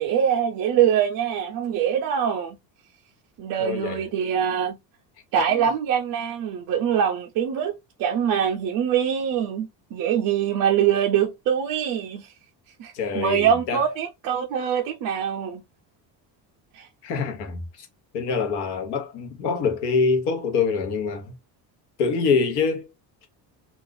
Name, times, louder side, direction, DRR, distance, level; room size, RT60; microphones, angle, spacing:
voice 1, 0.0-2.6 3.4-4.8 5.3-7.7 8.0-12.3 12.8-15.6 16.7-16.9, right 8 dB, 45° right, 0.5 m, -23 dB
voice 2, 3.6-4.0 5.5-5.7 12.9-13.8 17.0-17.9 18.1-21.3 22.0-22.9, left 5 dB, 65° left, 1.0 m, -25 dB
2.4 x 2.4 x 3.7 m
cardioid pair, 180°, 43 cm